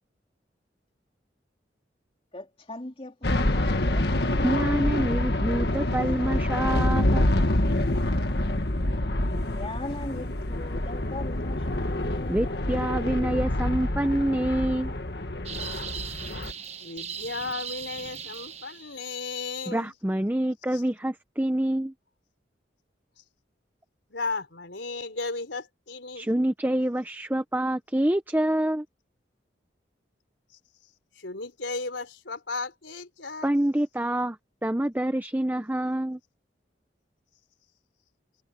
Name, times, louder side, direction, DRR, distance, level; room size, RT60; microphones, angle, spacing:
voice 1, 2.3-5.1 9.5-12.6, left 1 dB, 30° left, 3.1 m, -39 dB
sound 1, 3.2-16.5, left 1 dB, 60° left, 1.7 m, -26 dB
voice 2, 4.4-7.3 12.3-14.9 19.7-21.9 26.2-28.8 33.4-36.2, right 1 dB, 10° right, 0.7 m, -26 dB
sound 2, 15.5-19.1, right 7 dB, 35° right, 1.4 m, -38 dB
voice 3, 16.8-19.9 20.7-20.8 24.1-26.3 31.2-33.5, left 3 dB, 85° left, 3.9 m, -35 dB
head